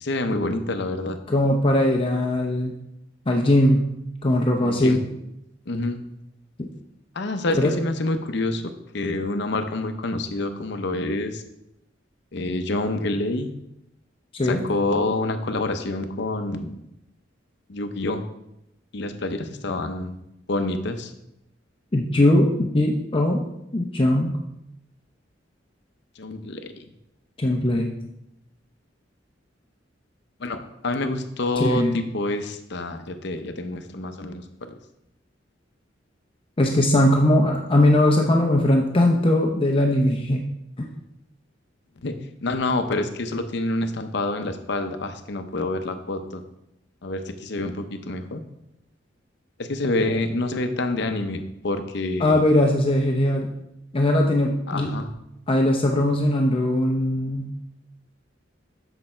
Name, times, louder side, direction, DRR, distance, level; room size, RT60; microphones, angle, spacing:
voice 1, 0.0-1.2 4.6-5.0 5.7-6.0 7.1-11.4 12.3-13.5 14.4-16.8 17.7-18.2 18.9-20.2 20.5-21.1 26.2-26.7 30.4-34.8 42.0-42.1 42.4-46.4 47.0-48.4 49.6-52.4 54.7-55.1, left 2 dB, 65° left, 7 dB, 0.7 m, -27 dB
voice 2, 1.3-2.7 3.3-3.8 4.2-5.1 7.5-7.8 14.3-14.6 21.9-23.4 23.7-24.3 27.4-27.9 31.6-32.0 36.6-40.4 40.8-40.9 52.2-53.5 53.9-55.0 55.5-57.5, left 1 dB, 30° left, 1 dB, 0.6 m, -20 dB
6.8 x 6.5 x 4.3 m, 0.82 s
head